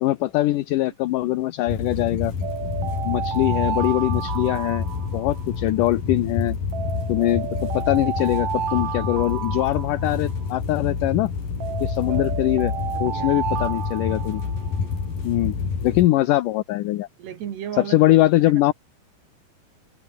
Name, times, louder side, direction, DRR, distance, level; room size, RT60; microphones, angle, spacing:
voice 1, 0.0-2.3 3.1-4.9 5.1-6.6 7.1-11.3 11.8-12.7 13.0-14.4 15.2-15.6 15.8-17.1 17.8-18.7, left 16 dB, 75° left, 2.0 m, -22 dB
sound 1, 1.7-16.1, left 5 dB, 55° left, 6.5 m, -28 dB
sound 2, 2.4-5.6 6.7-10.5 11.6-14.8, right 9 dB, 50° right, 2.9 m, -31 dB
voice 2, 13.0-13.3 17.2-18.2 18.5-18.6, right 9 dB, 80° right, 4.7 m, -35 dB
open air
omnidirectional pair, 4.7 m